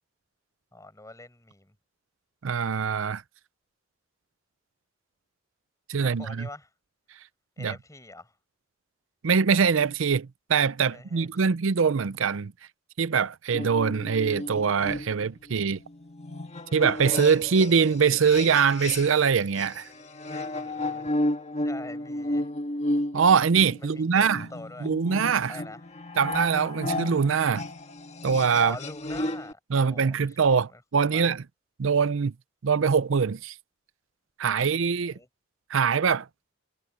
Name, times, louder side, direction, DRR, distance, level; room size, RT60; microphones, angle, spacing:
voice 1, 0.7-1.7 6.0-6.7 7.6-8.3 10.9-11.3 20.3-21.1 21.6-22.5 23.8-24.9 25.5-25.8 28.6-31.3 34.8-35.3, left 2 dB, 15° left, 5.7 m, -44 dB
voice 2, 2.4-3.2 5.9-6.5 7.6-7.8 9.2-12.5 13.0-15.8 16.7-19.9 23.1-24.5 24.8-25.6 26.2-27.6 28.2-28.8 29.7-31.4 31.8-32.3 32.6-33.5 34.4-35.2 35.7-36.3, right 6 dB, 70° right, 0.5 m, -23 dB
sound 1, 13.5-19.3 19.6-29.5, left 1 dB, 35° left, 1.7 m, -33 dB
head